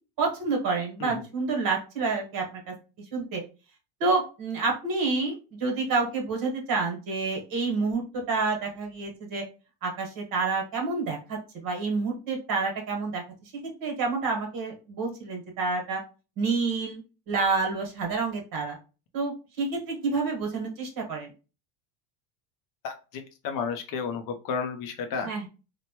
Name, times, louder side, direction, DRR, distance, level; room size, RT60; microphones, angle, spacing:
voice 1, 0.2-2.7 3.1-3.4 4.0-9.4 9.8-13.2 13.6-16.0 16.4-17.0 17.3-18.8 19.1-21.3 25.2-25.5, right 4 dB, 45° right, 1 dB, 1.2 m, -28 dB
voice 2, 22.8-25.3, left 6 dB, 45° left, 6 dB, 0.5 m, -32 dB
3.0 x 2.2 x 2.8 m, 0.33 s
supercardioid pair, 120°, 48 cm